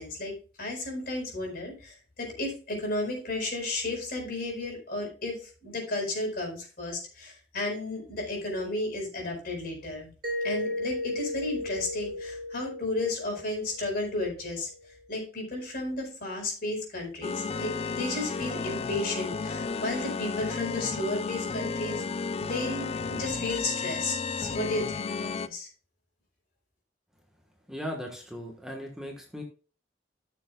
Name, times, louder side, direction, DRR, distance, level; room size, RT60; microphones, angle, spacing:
voice 1, 0.0-10.1 10.4-14.7 15.1-22.0 22.4-25.7, left 2 dB, 55° left, 1 dB, 4.5 m, -33 dB
Mallet percussion, 10.2-14.8, left 2 dB, 55° right, 1.8 m, -35 dB
sound 1, 17.2-25.5, left 4 dB, 35° left, 0.4 m, -33 dB
voice 2, 27.7-29.4, equal, 5° right, 1 dB, 1.3 m, -38 dB
14.5 x 6.8 x 2.3 m, 0.36 s
head